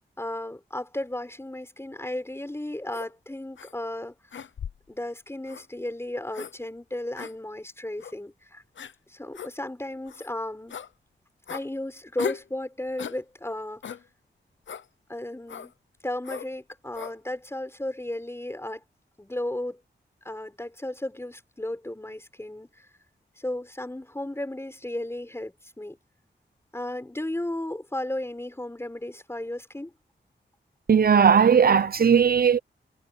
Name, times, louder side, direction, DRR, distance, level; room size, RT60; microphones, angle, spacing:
voice 1, 0.2-4.1 4.9-8.6 9.1-10.8 11.5-13.8 15.1-15.7 16.0-18.8 19.2-19.8 20.2-22.9 23.4-26.0 26.7-29.9, left 1 dB, 15° left, 6.9 m, -34 dB
sound 1, 2.9-3.1 3.6-3.7 4.3-4.9 5.5-5.7 6.3-6.5 7.2-7.3 8.0-8.1 8.8-8.9 9.3-9.5 10.1-10.3 10.7-10.9 11.5-11.7 12.2-12.5 13.0-13.2 13.8-14.0 14.7-14.9 15.5-15.7 16.2-16.5 16.9-17.1, left 7 dB, 90° left, 0.8 m, -37 dB
voice 2, 30.9-32.6, right 7 dB, 55° right, 0.8 m, -18 dB
wide cardioid pair, 125°, 19 cm